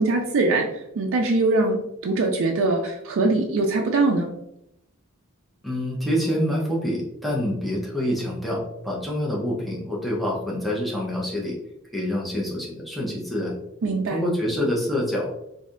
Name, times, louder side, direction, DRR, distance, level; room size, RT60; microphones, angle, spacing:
voice 1, 0.0-4.3 13.8-14.2, right 3 dB, 65° right, 0 dB, 0.4 m, -22 dB
voice 2, 5.6-11.6 11.9-13.6 14.1-15.5, equal, ahead, -4 dB, 0.6 m, -26 dB
3.2 x 2.6 x 2.4 m, 0.83 s
head